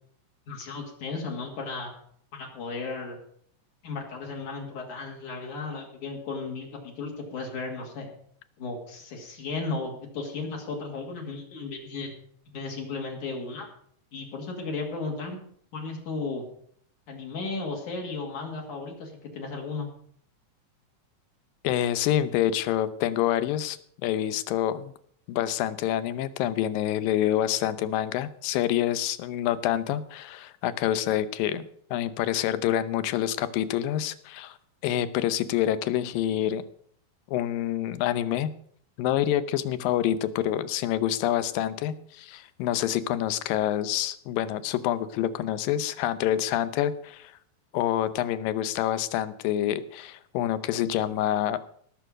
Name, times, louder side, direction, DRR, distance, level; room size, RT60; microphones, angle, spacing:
voice 1, 0.5-1.9 2.3-3.2 3.8-8.1 8.6-12.1 12.5-13.7 14.1-15.4 15.7-16.4 17.1-19.9, left 3 dB, 65° left, 0 dB, 3.8 m, -35 dB
voice 2, 21.6-24.9 25.3-34.6 34.8-36.6 37.3-38.5 39.0-47.3 47.7-51.6, left 11 dB, 85° left, 14 dB, 2.5 m, -27 dB
17.5 x 7.0 x 6.2 m, 0.62 s
omnidirectional pair, 4.0 m